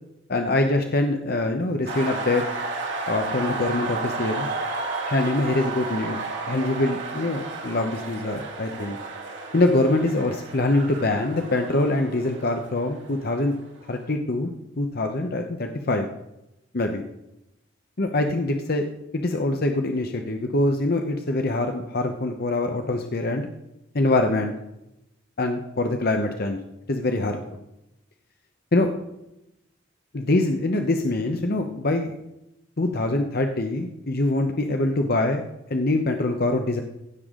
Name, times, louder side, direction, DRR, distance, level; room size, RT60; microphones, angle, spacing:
voice 1, 0.3-2.4 3.1-4.5 5.1-6.2 6.5-9.0 9.5-13.6 13.9-14.5 14.8-16.1 16.7-17.0 18.0-18.9 19.1-23.5 23.9-24.5 25.4-26.6 26.9-27.4 28.7-28.9 30.1-32.1 32.8-35.4 35.7-36.8, left 2 dB, 50° left, 5 dB, 0.9 m, -24 dB
sound 1, 1.9-13.6, right 3 dB, 65° right, 2.6 m, -32 dB
16.5 x 6.9 x 3.8 m, 0.86 s
head